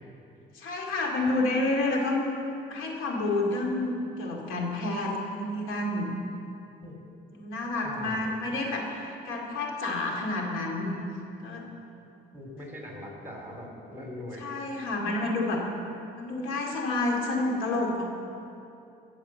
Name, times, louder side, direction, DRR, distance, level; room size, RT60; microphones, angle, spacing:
voice 1, 0.5-2.3 2.7-6.1 7.4-10.9 11.4-11.7 14.4-15.6 16.2-18.0, left 2 dB, 90° left, 0 dB, 2.4 m, -29 dB
voice 2, 7.8-8.3 12.3-14.6, left 1 dB, 10° right, 0 dB, 3.8 m, -41 dB
17.0 x 7.2 x 7.5 m, 2.8 s
cardioid pair, 90°, 20 cm